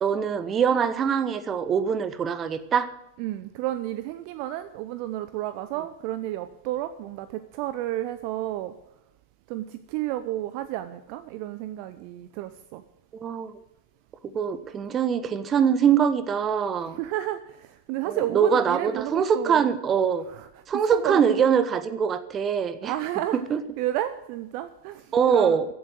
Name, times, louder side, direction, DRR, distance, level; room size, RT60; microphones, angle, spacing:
voice 1, 0.0-2.9 13.2-13.5 14.3-17.0 18.0-20.2 20.7-22.9 23.3-23.6 25.1-25.7, right 7 dB, 25° right, 14 dB, 1.2 m, -23 dB
voice 2, 3.2-8.7 9.5-12.8 17.0-19.6 20.3-20.5 20.9-21.4 22.8-23.4 23.8-25.6, right 14 dB, 45° right, 12 dB, 0.7 m, -31 dB
15.0 x 8.0 x 7.8 m, 0.85 s
figure-of-eight pair, 90°, 0 cm